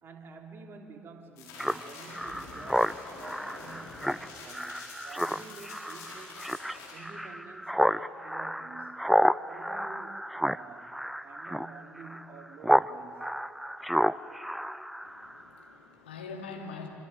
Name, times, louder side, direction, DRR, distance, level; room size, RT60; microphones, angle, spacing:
voice 1, 0.0-6.4 6.9-13.3, right 4 dB, 40° right, 3 dB, 3.2 m, -49 dB
sound 1, 1.4-6.9, left 3 dB, 60° left, 6.6 m, -46 dB
Speech synthesizer, 1.6-12.9 13.2-15.4, equal, ahead, 0.6 m, -30 dB
voice 2, 15.0-16.9, left 4 dB, 80° left, 1 dB, 2.8 m, -43 dB
26.0 x 25.5 x 7.8 m, 2.8 s
figure-of-eight pair, 55°, 6 cm